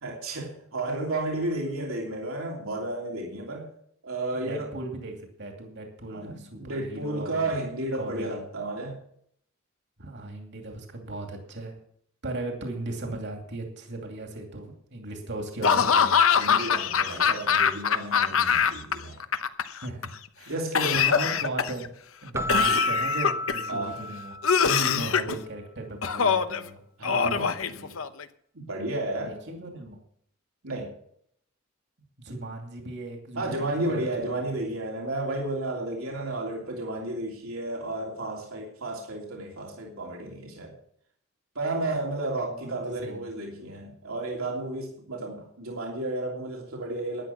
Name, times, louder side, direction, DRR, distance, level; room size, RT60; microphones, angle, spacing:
voice 1, 0.0-3.7 4.0-4.7 6.1-9.0 16.4-19.2 20.5-21.1 23.7-24.0 24.6-25.0 27.0-27.5 28.5-29.3 30.6-30.9 33.3-40.7 41.5-47.3, right 2 dB, 85° right, 0 dB, 3.1 m, -32 dB
voice 2, 4.3-7.5 7.9-8.4 10.0-11.8 12.2-16.2 19.8-20.1 20.4-20.5 21.0-21.9 22.2-24.4 24.8-26.8 27.1-28.0 29.3-30.0 32.2-33.6 33.9-34.1 42.6-43.3, right 2 dB, 60° right, 3 dB, 2.6 m, -37 dB
Laughter / Cough, 15.6-18.9 19.2-20.1 20.8-21.9 22.5-23.7 24.4-25.4 26.0-26.6 27.0-28.2, left 7 dB, 75° left, 0.9 m, -23 dB
Keyboard (musical), 22.3-24.7, left 2 dB, 15° right, 0.5 m, -29 dB
12.5 x 10.5 x 5.9 m, 0.65 s
head